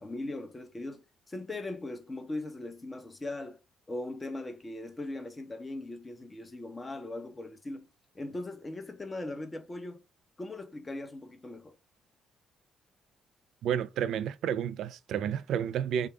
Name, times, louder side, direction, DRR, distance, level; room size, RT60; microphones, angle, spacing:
voice 1, 0.0-3.6 3.9-7.9 8.1-10.0 10.4-11.7, left 2 dB, 20° left, 0.9 m, -39 dB
voice 2, 13.6-16.1, right 9 dB, 75° right, 0.4 m, -31 dB
3.5 x 2.3 x 3.3 m
cardioid pair, 90°, 0 cm